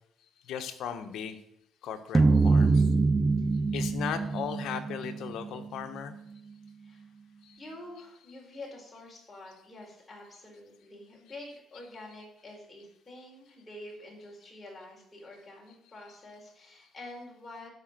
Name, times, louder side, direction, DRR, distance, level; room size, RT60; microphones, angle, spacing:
voice 1, 0.5-1.4 1.8-2.9 3.7-6.1 7.4-7.5, left 8 dB, 80° left, 8 dB, 1.2 m, -37 dB
sound 1, 2.1-6.5, right 3 dB, 25° right, 0.6 m, -25 dB
voice 2, 7.6-17.7, left 1 dB, 25° left, -2 dB, 4.4 m, -47 dB
11.5 x 5.6 x 7.6 m, 0.75 s
cardioid pair, 90°, 0 cm